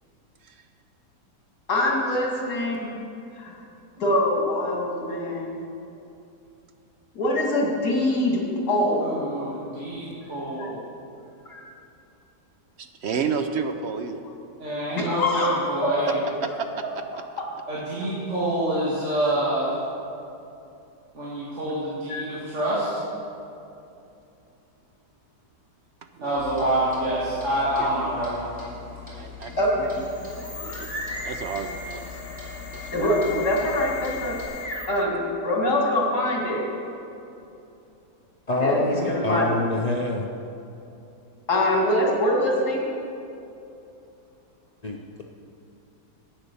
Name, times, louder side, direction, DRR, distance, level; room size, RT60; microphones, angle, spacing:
voice 1, 1.7-2.9 3.4-3.6 4.0-5.6 7.1-8.4 8.7-9.1 10.6-10.7 11.5-11.7 14.9-15.9 22.1-22.2 29.6-29.9 32.9-34.4 34.9-36.6 38.6-38.8 39.1-39.5 41.5-42.8, left 1 dB, 70° left, -2 dB, 2.8 m, -24 dB
voice 2, 9.0-10.8 14.6-16.2 17.7-19.8 21.1-22.9 26.2-28.5 39.0-39.1, right 1 dB, 45° right, -8 dB, 2.3 m, -27 dB
voice 3, 12.8-14.2 16.1-16.2 16.4-17.2 26.2-26.4 27.8-28.2 29.2-30.1 30.6-32.2 32.7-33.2 35.1-35.2, right 6 dB, 70° right, 7 dB, 0.6 m, -32 dB
Clock, 26.4-34.5, left 7 dB, 5° right, 3.3 m, -42 dB
sound 1, 29.8-35.1, left 3 dB, 30° left, 1.6 m, -36 dB
voice 4, 38.5-40.3 44.8-45.2, left 2 dB, 90° left, 0 dB, 0.3 m, -26 dB
10.5 x 9.0 x 6.8 m, 2.7 s
omnidirectional pair, 1.8 m